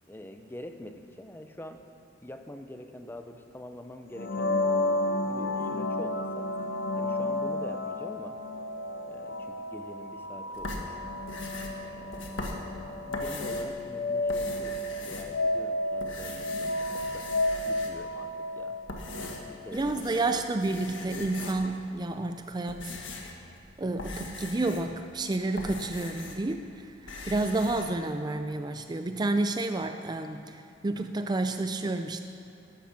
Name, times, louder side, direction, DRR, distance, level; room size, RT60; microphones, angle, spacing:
voice 1, 0.1-1.9 2.2-4.6 5.2-6.5 7.0-8.4 9.1-11.0 11.8-17.3 17.7-18.8 19.4-20.3, left 1 dB, 10° left, 7 dB, 0.7 m, -45 dB
sound 1, 4.1-19.8, left 1 dB, 65° left, 0.9 m, -32 dB
sound 2, 10.5-13.8 14.1-15.6 16.0-18.1 18.7-20.3 20.6-21.8 22.4-26.6 26.8-27.9, left 2 dB, 90° left, 1.7 m, -40 dB
voice 2, 19.7-23.0 23.8-32.2, right 2 dB, 20° right, 7 dB, 0.4 m, -30 dB
14.0 x 12.5 x 5.9 m, 2.7 s
head